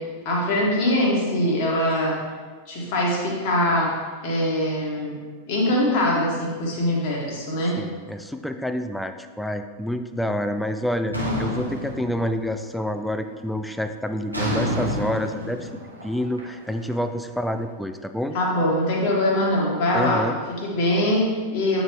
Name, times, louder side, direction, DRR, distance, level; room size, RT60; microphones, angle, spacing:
voice 1, 0.0-2.2 2.7-3.9 4.2-5.2 5.5-7.8 18.3-21.8, left 1 dB, 45° left, -3 dB, 1.8 m, -23 dB
voice 2, 7.8-15.7 16.0-18.4 19.9-20.3, left 1 dB, ahead, 8 dB, 0.3 m, -28 dB
sound 1, 11.1-12.7 13.0-13.4 14.3-17.4, equal, 85° right, 1.3 m, -29 dB
8.8 x 4.0 x 3.3 m, 1.5 s
figure-of-eight pair, 90°, 0 cm